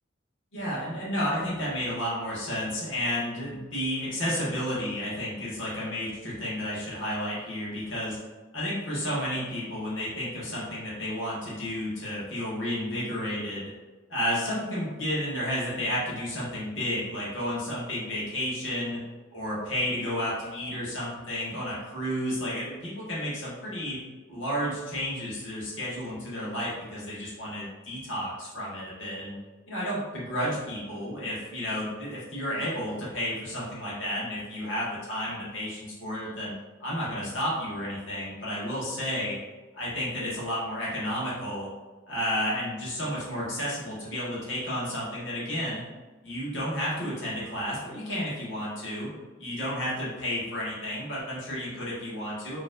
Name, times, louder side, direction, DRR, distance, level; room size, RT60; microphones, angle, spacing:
voice 1, 0.5-8.2 8.5-13.7 14.1-19.0 19.3-24.0 24.3-29.4 29.7-36.5 36.8-39.3 39.7-41.7 42.1-45.8 46.2-49.1 49.4-52.6, equal, 90° left, -7 dB, 1.4 m, -32 dB
4.3 x 3.2 x 2.5 m, 1.3 s
head